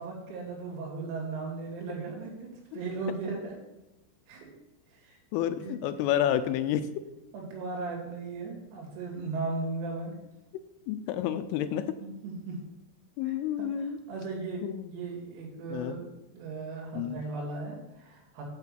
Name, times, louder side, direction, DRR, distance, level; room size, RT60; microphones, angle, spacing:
voice 1, 0.0-3.6 4.3-4.5 4.9-5.8 7.3-10.1 12.0-12.6 13.3-14.6 14.9-16.1 16.3-18.4, right 3 dB, 90° right, -1 dB, 5.3 m, -37 dB
voice 2, 5.3-6.9 10.9-11.9 13.2-14.0 14.6-14.9 15.7-16.0 16.9-17.2, left 10 dB, 85° left, 10 dB, 2.9 m, -29 dB
9.0 x 5.8 x 7.5 m, 0.98 s
omnidirectional pair, 6.0 m